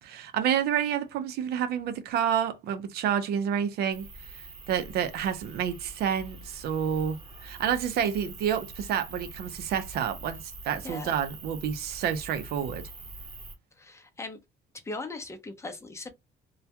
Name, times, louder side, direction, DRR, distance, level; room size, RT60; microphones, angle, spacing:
voice 1, 0.0-4.1 4.3-12.9, right 8 dB, 70° right, 0.5 m, -29 dB
sound 1, 3.9-13.6, right 2 dB, 35° right, 1.0 m, -44 dB
voice 2, 10.8-11.2 13.8-14.4 14.8-16.1, left 2 dB, 15° left, 0.6 m, -39 dB
2.2 x 2.2 x 2.7 m
cardioid pair, 110°, 17 cm